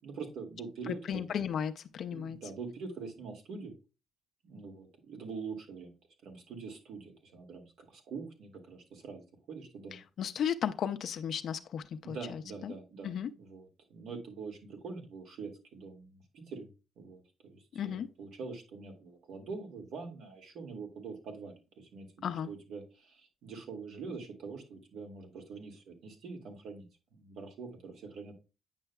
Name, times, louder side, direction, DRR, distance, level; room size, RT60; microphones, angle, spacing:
voice 1, 0.0-1.2 2.1-3.7 4.4-6.0 6.2-10.0 12.0-16.7 17.0-28.3, right 4 dB, 80° right, 2.0 m, -44 dB
voice 2, 0.9-2.4 9.9-12.7 13.0-13.3 17.7-18.1 22.2-22.5, left 8 dB, 65° left, 0.5 m, -35 dB
8.9 x 5.6 x 2.3 m
cardioid pair, 90°, 0 cm